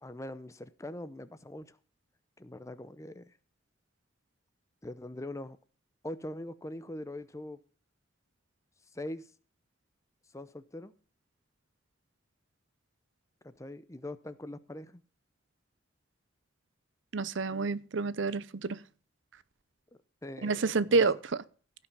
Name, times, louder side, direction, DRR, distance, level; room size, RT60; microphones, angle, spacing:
voice 1, 0.0-1.8 2.4-3.3 4.8-5.6 6.0-7.6 8.9-9.3 10.3-10.9 13.4-15.0 20.2-21.1, left 1 dB, 15° left, 0.6 m, -42 dB
voice 2, 17.1-18.8 20.4-21.2, right 4 dB, 70° right, 0.6 m, -28 dB
16.0 x 5.7 x 5.3 m
head